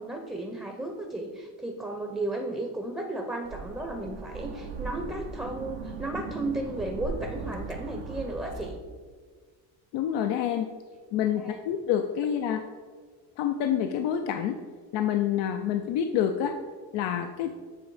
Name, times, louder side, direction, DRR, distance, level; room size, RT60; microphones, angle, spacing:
voice 1, 0.0-8.8 11.4-11.6, right 1 dB, 5° right, 3 dB, 0.7 m, -34 dB
sound 1, 3.4-8.7, right 5 dB, 70° right, 0.9 m, -38 dB
voice 2, 9.9-10.7 11.1-12.6 13.4-14.6 14.9-16.6 16.9-17.5, left 9 dB, 75° left, 5 dB, 0.6 m, -27 dB
7.6 x 3.1 x 4.8 m, 1.5 s
cardioid pair, 90°, 45 cm